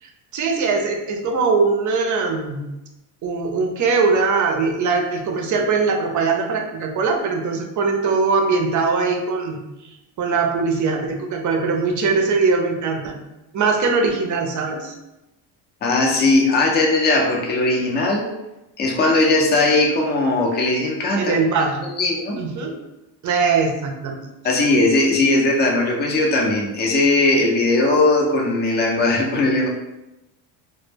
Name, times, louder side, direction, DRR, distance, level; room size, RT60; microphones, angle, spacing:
voice 1, 0.0-2.6 3.2-13.1 13.5-15.0 21.2-21.8 22.4-22.8 23.2-24.2, right 4 dB, 40° right, 3 dB, 0.5 m, -21 dB
voice 2, 15.8-18.3 18.8-21.3 22.0-22.4 24.4-29.7, left 2 dB, 20° left, -1 dB, 0.5 m, -18 dB
2.1 x 2.1 x 3.2 m, 0.96 s
supercardioid pair, 95°, 47 cm